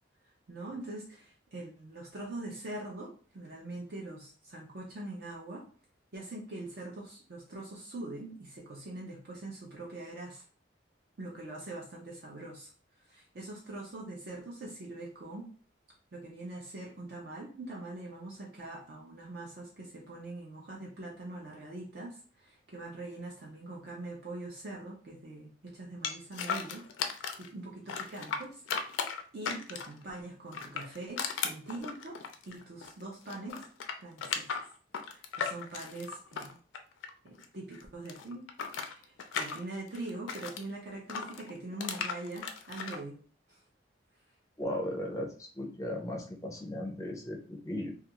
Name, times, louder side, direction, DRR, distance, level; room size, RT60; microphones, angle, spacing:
voice 1, 0.5-5.6 6.1-10.4 11.2-12.7 13.1-15.5 16.1-26.9 27.4-28.6 28.9-29.0 29.3-32.2 32.4-33.7 34.0-34.5 35.0-36.6 37.2-38.4 38.8-43.2 43.5-43.6, right 2 dB, 55° right, -2 dB, 0.5 m, -43 dB
sound 1, 26.0-27.5 27.9-30.0 30.5-33.0 33.3-37.4 37.7-40.6 41.1-43.0, left 6 dB, 85° left, 0.4 m, -36 dB
voice 2, 44.6-47.9, left 1 dB, 15° left, 1 dB, 0.5 m, -36 dB
2.3 x 2.3 x 2.9 m, 0.40 s
head